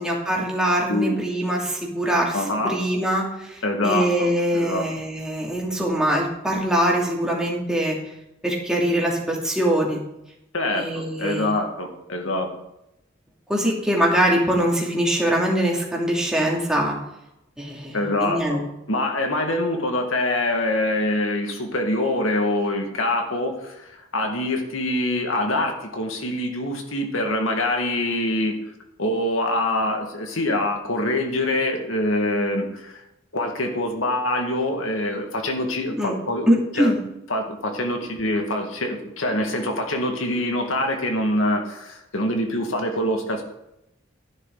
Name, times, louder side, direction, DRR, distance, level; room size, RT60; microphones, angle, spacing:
voice 1, 0.0-8.0 8.4-10.0 10.7-11.6 13.5-17.0 17.6-18.6 36.0-36.2 36.5-37.0, right 1 dB, 5° right, -3 dB, 2.8 m, -23 dB
voice 2, 2.3-2.8 3.6-4.9 10.5-12.6 17.9-18.6 18.9-28.6 29.0-33.0 33.3-36.9 37.3-43.4, left 1 dB, 90° left, 3 dB, 2.0 m, -25 dB
14.0 x 10.5 x 4.0 m, 0.86 s
head